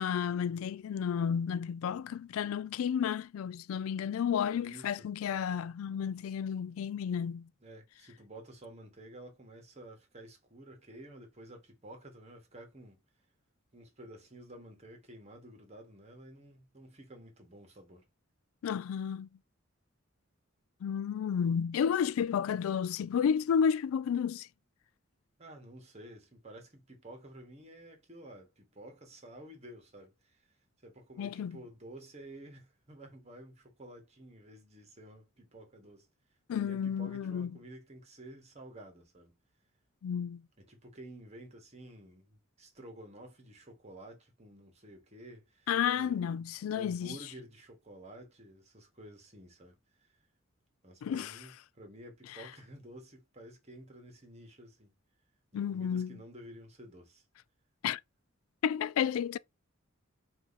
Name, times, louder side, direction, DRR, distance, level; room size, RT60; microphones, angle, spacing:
voice 1, 0.0-7.5 18.6-19.3 20.8-24.5 31.2-31.6 36.5-37.5 40.0-40.4 45.7-47.2 51.0-51.4 52.4-52.5 55.5-56.2 57.8-58.0 58.6-59.4, left 7 dB, 85° left, 0.3 m, -32 dB
voice 2, 4.5-5.1 7.6-13.0 13.7-18.0 25.4-30.4 30.8-36.1 36.5-39.4 40.6-45.7 45.9-46.4 46.7-49.8 50.8-54.9 55.5-57.2, right 1 dB, 30° right, 1.4 m, -51 dB
4.5 x 2.7 x 4.0 m
head